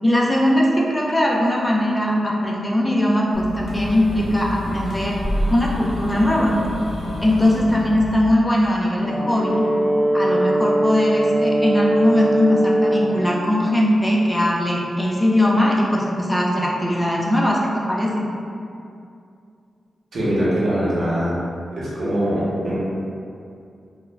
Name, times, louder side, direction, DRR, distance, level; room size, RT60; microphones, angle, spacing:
voice 1, 0.0-5.2 5.5-6.6 7.2-9.6 10.1-18.3, left 1 dB, 15° left, -4 dB, 0.4 m, -20 dB
sound 1, 3.3-8.2, left 1 dB, 80° left, 0.5 m, -28 dB
Brass instrument, 9.0-13.2, right 1 dB, 5° right, 0.8 m, -20 dB
voice 2, 20.1-21.4 21.7-22.7, equal, 75° right, -8 dB, 0.8 m, -22 dB
2.3 x 2.0 x 3.1 m, 2.5 s
cardioid pair, 75°, 0 cm